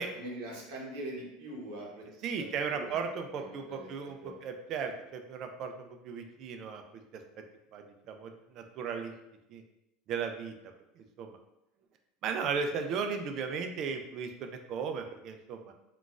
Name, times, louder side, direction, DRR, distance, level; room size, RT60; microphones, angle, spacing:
voice 1, 0.0-2.0 2.4-2.9 3.3-3.9 4.2-4.4, right 1 dB, 70° right, -2 dB, 0.9 m, -42 dB
voice 2, 2.2-6.8 7.1-7.4 7.7-9.1 9.5-9.6 10.1-10.5 11.0-11.4 12.2-15.7, right 5 dB, 40° right, 5 dB, 0.3 m, -36 dB
3.8 x 2.3 x 2.4 m, 0.89 s
cardioid pair, 160°, 0 cm